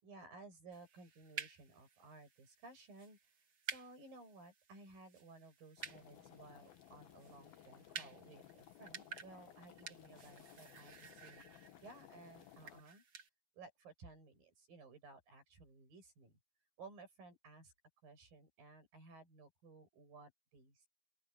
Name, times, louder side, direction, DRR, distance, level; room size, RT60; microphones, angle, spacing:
voice 1, 0.0-3.2 3.7-11.4 11.8-13.0 13.5-16.4 16.8-17.7 18.0-20.9, right 3 dB, 50° right, 9.2 m, -57 dB
sound 1, 0.7-13.3, right 6 dB, 80° right, 0.9 m, -53 dB
sound 2, 5.8-12.8, left 12 dB, 65° left, 2.8 m, -60 dB
open air
omnidirectional pair, 5.1 m